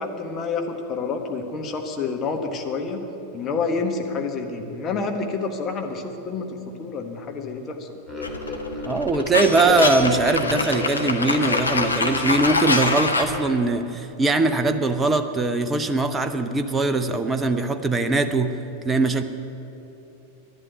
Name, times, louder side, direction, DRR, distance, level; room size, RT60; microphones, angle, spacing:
voice 1, 0.0-3.1 3.3-7.9, left 4 dB, 30° left, 4 dB, 1.5 m, -28 dB
sound 1, 8.1-13.1, left 2 dB, 5° left, 2.5 m, -32 dB
sound 2, 8.2-13.4, left 3 dB, 80° left, 1.0 m, -24 dB
voice 2, 8.9-18.6 18.8-19.2, right 3 dB, 15° right, 8 dB, 0.7 m, -21 dB
11.0 x 11.0 x 9.3 m, 2.9 s
figure-of-eight pair, 90°, 0 cm